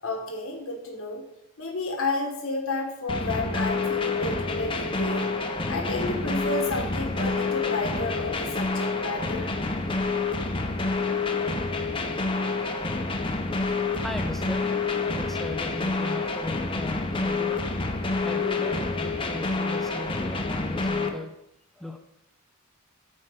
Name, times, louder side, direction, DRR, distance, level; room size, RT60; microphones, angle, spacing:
voice 1, 0.0-1.2 1.6-5.3 5.7-9.5, left 2 dB, 75° left, 2 dB, 1.4 m, -31 dB
sound 1, 3.1-21.1, left 3 dB, 25° left, 0.9 m, -28 dB
voice 2, 14.0-14.8 15.1-17.7 18.2-21.3 21.8-22.0, left 1 dB, ahead, 5 dB, 0.5 m, -37 dB
9.1 x 4.4 x 6.3 m, 0.84 s
head